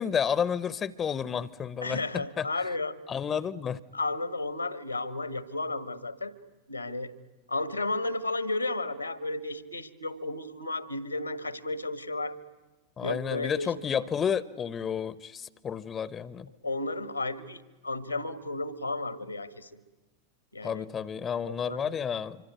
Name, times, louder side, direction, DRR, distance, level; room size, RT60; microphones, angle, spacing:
voice 1, 0.0-2.5 3.1-3.8 13.0-16.5 20.6-22.4, left 7 dB, 25° left, 20 dB, 0.8 m, -31 dB
voice 2, 1.8-2.9 3.9-6.3 6.7-7.1 7.5-12.4 13.0-13.7 16.6-19.7 20.5-20.9 21.5-22.0, left 2 dB, 85° left, 15 dB, 1.7 m, -33 dB
26.0 x 24.5 x 9.3 m, 1.1 s
figure-of-eight pair, 90°, 0 cm